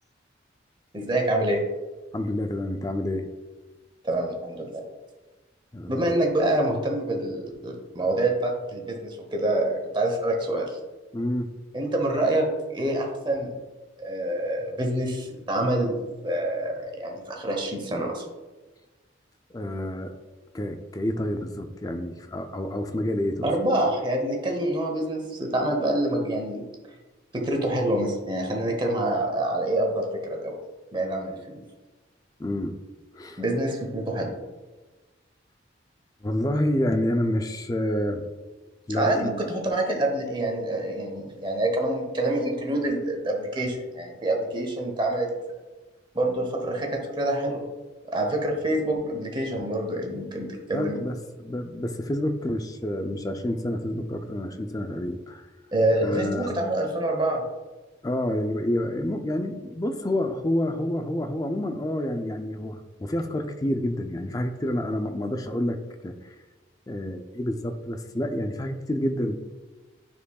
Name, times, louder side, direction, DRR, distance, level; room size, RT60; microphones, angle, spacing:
voice 1, 0.9-1.6 4.0-4.8 5.9-10.8 11.7-12.5 12.7-13.5 14.0-16.0 16.2-18.3 23.4-26.6 27.3-30.6 30.9-31.6 33.4-34.3 39.0-45.3 46.1-47.6 48.1-51.0 55.7-57.4, right 1 dB, 25° right, 1 dB, 0.9 m, -26 dB
voice 2, 2.1-3.3 5.7-5.9 11.1-11.5 19.5-20.1 20.5-23.5 32.4-32.8 33.1-33.4 36.2-38.3 38.9-39.3 50.7-55.4 56.0-56.5 58.0-66.3 66.9-69.4, left 1 dB, 20° left, 7 dB, 0.4 m, -28 dB
9.9 x 4.5 x 2.3 m, 1.2 s
head